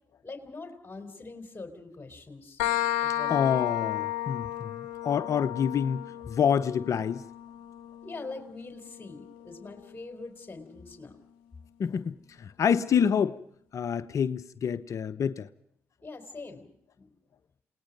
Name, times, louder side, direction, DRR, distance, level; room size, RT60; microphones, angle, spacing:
voice 1, 0.2-2.6 3.0-3.7 8.0-11.2 16.0-16.7 17.0-17.1, left 3 dB, 30° left, 4.1 m, -43 dB
sound 1, 2.6-10.0, left 13 dB, 90° left, 0.8 m, -34 dB
voice 2, 3.3-7.2 11.8-13.4 13.7-15.5, left 7 dB, 60° left, 0.8 m, -27 dB
29.5 x 19.0 x 5.3 m
hypercardioid pair, 45°, 6 cm